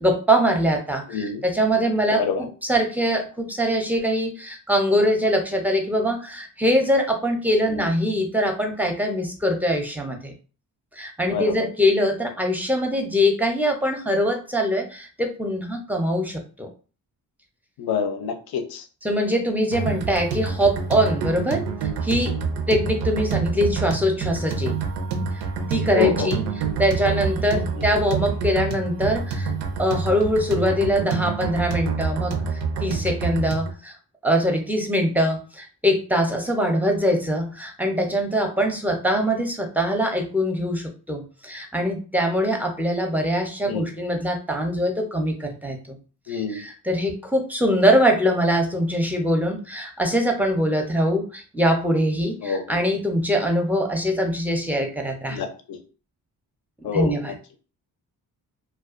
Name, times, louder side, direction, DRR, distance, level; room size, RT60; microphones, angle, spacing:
voice 1, 0.0-10.3 11.0-16.7 19.0-21.6 22.0-22.3 22.7-24.8 25.7-26.4 26.8-29.5 29.8-33.9 34.2-46.0 46.3-55.4 56.8-57.3, equal, 5° right, 3 dB, 0.5 m, -23 dB
voice 2, 1.1-1.4 2.2-2.5 7.7-7.9 11.2-11.7 17.8-18.9 25.9-26.3 27.7-27.9 43.7-43.9 46.3-46.6 52.4-52.8 55.3-55.8 56.8-57.4, left 6 dB, 65° left, 6 dB, 0.6 m, -27 dB
sound 1, 19.7-33.7, right 5 dB, 85° right, 0.6 m, -27 dB
2.2 x 2.2 x 2.4 m, 0.37 s
cardioid pair, 65°, 39 cm